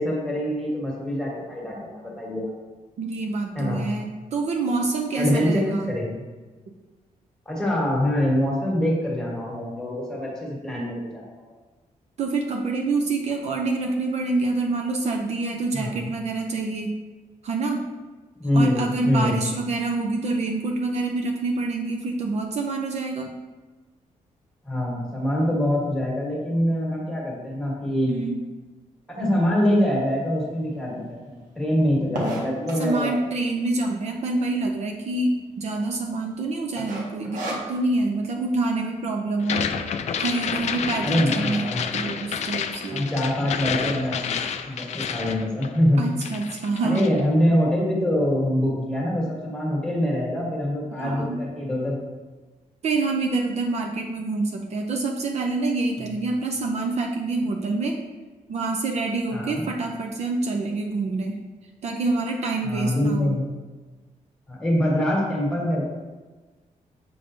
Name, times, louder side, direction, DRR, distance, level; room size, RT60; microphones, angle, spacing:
voice 1, 0.0-2.5 3.5-3.8 5.1-6.2 7.4-11.2 15.7-16.0 18.4-19.4 24.6-28.1 29.1-33.1 41.0-41.8 42.9-44.4 44.7-46.0 46.8-52.0 59.3-59.7 62.6-63.5 64.5-65.8, left 1 dB, 5° left, -4 dB, 1.5 m, -24 dB
voice 2, 3.0-5.9 12.2-16.9 17.4-17.8 18.5-23.3 28.0-28.4 32.8-39.7 40.2-43.1 46.0-47.1 51.0-51.4 52.8-58.0 58.5-61.4 61.8-63.4, right 3 dB, 55° right, 2 dB, 0.5 m, -26 dB
sound 1, 29.6-29.7 30.3-30.4 30.6-30.7 31.0-33.1 33.7-34.2 34.5-34.6 34.8-34.9 35.4-35.8 36.1-36.4 36.8-38.0, right 1 dB, 80° right, 1.3 m, -32 dB
sound 2, 39.4-46.0 46.2-47.2, left 7 dB, 55° left, 0.4 m, -29 dB
6.9 x 5.1 x 2.6 m, 1.3 s
wide cardioid pair, 170°, 14 cm